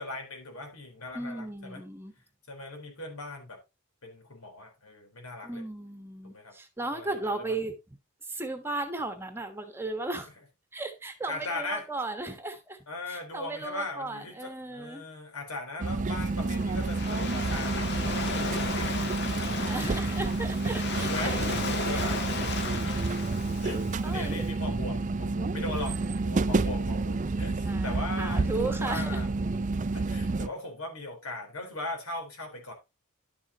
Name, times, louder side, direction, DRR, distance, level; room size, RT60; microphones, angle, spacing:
voice 1, 0.0-1.8 2.5-3.6 4.0-5.6 6.2-6.5 6.9-7.5 10.2-10.3 11.3-11.8 12.9-19.7 20.3-29.3 29.9-32.7, left 2 dB, 80° left, 4.1 m, -39 dB
voice 2, 1.1-2.1 5.4-7.7 8.3-10.3 10.7-12.8 13.1-15.0 18.9-21.4 21.9-22.1 24.0-25.4 25.9-26.2 27.7-29.2, right 2 dB, 10° right, 1.2 m, -36 dB
sound 1, 15.8-30.5, right 3 dB, 35° right, 0.4 m, -29 dB
Waves surf, 16.2-24.4, left 3 dB, 50° left, 1.4 m, -35 dB
11.5 x 7.2 x 2.9 m
head